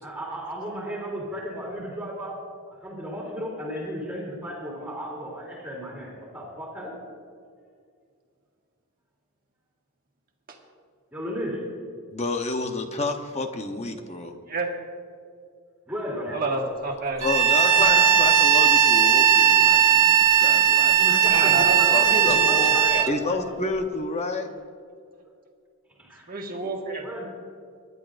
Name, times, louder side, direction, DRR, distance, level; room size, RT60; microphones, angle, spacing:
voice 1, 0.0-2.4 2.8-6.9 11.1-11.8 15.9-16.4 17.6-18.3 20.9-23.5 26.0-26.3 27.0-27.2, equal, 5° right, -2 dB, 3.0 m, -34 dB
voice 2, 12.1-14.4 17.2-21.2 21.9-22.4 23.1-24.5, left 3 dB, 30° left, 5 dB, 0.9 m, -30 dB
voice 3, 16.3-17.4 21.2-23.1 26.3-27.2, right 2 dB, 40° right, 0 dB, 1.7 m, -30 dB
Bowed string instrument, 17.2-23.1, right 9 dB, 90° right, 0.8 m, -18 dB
26.0 x 11.0 x 2.6 m, 2.2 s
head